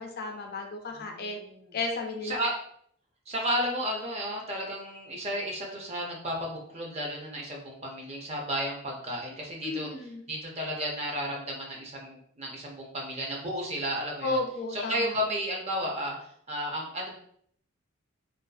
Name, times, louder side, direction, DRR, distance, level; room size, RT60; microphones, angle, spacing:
voice 1, 0.0-1.4 1.7-2.4 9.6-10.2 14.2-15.0, left 3 dB, 45° left, 3 dB, 0.4 m, -33 dB
voice 2, 0.9-1.8 2.2-2.5 3.3-14.4 14.7-17.1, equal, 30° right, 0 dB, 0.5 m, -33 dB
2.5 x 2.4 x 2.2 m, 0.65 s
head